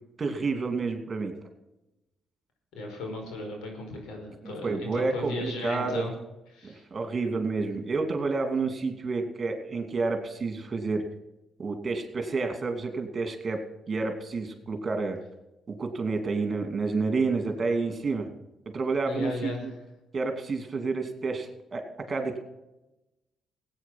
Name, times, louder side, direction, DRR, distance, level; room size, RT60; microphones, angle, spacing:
voice 1, 0.2-1.3 4.4-6.1 6.6-11.0 11.6-13.6 13.9-15.2 15.8-18.3 18.7-19.7 20.1-22.4, right 3 dB, 35° right, 6 dB, 2.8 m, -29 dB
voice 2, 2.7-6.1 6.5-6.8 19.1-19.7, left 2 dB, 90° left, 2 dB, 5.1 m, -36 dB
17.0 x 8.9 x 6.0 m, 0.97 s
cardioid pair, 90°, 0 cm